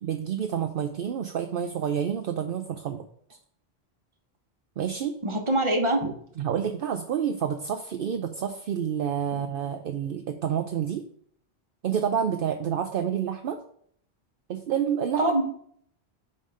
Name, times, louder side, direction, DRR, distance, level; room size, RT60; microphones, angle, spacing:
voice 1, 0.0-3.0 4.8-5.2 6.4-11.0 11.8-13.6 14.5-15.2, right 8 dB, 65° right, 7 dB, 0.7 m, -28 dB
voice 2, 5.2-6.1 15.2-15.4, right 1 dB, 30° right, 2 dB, 1.3 m, -24 dB
5.4 x 5.3 x 6.3 m, 0.64 s
omnidirectional pair, 1.1 m